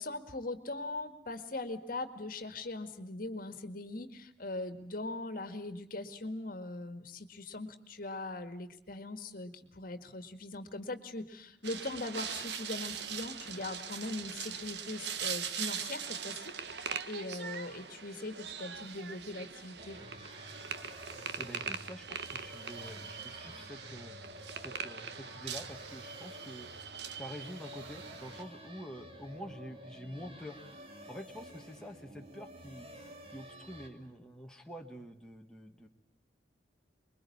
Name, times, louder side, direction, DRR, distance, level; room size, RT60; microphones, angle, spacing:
voice 1, 0.0-20.0, left 2 dB, 55° left, 9 dB, 2.0 m, -41 dB
sound 1, 11.6-28.4, right 7 dB, 70° right, 1.5 m, -41 dB
sound 2, 19.8-33.9, equal, 35° right, 2.9 m, -51 dB
voice 2, 21.4-24.2 24.6-26.7 27.2-30.6 31.1-32.9 33.3-35.9, equal, 5° left, 2 dB, 1.7 m, -47 dB
26.0 x 22.5 x 8.6 m, 0.70 s
head